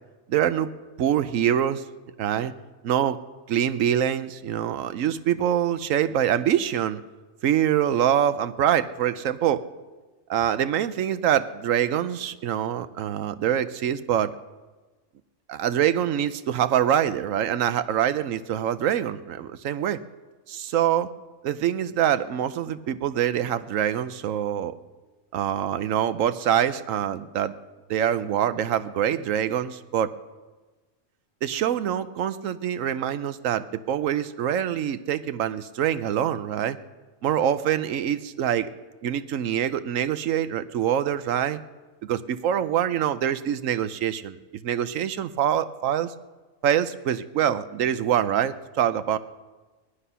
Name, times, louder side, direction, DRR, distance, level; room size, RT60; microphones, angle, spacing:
voice 1, 0.3-0.7 1.0-1.8 2.2-2.5 2.8-3.2 3.5-7.0 7.4-9.7 10.3-14.3 15.5-20.0 20.5-21.1 21.4-24.7 25.3-27.5 27.9-30.1 31.4-36.8 37.2-38.7 39.0-41.6 42.0-44.4 44.6-46.1 46.6-49.2, right 10 dB, 90° right, 13 dB, 1.1 m, -25 dB
18.5 x 11.5 x 5.6 m, 1.2 s
omnidirectional pair, 1.3 m